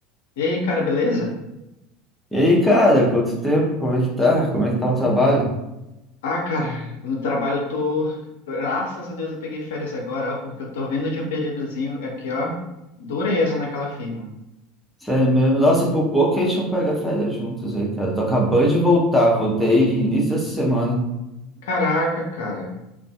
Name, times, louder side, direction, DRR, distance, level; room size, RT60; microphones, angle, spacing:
voice 1, 0.4-1.4 6.2-12.6 13.0-14.3 21.6-22.8, left 2 dB, 65° left, -1 dB, 0.4 m, -25 dB
voice 2, 2.3-5.5 15.0-21.0, equal, 5° left, -3 dB, 0.6 m, -19 dB
2.5 x 2.3 x 2.3 m, 0.93 s
figure-of-eight pair, 70°, 0 cm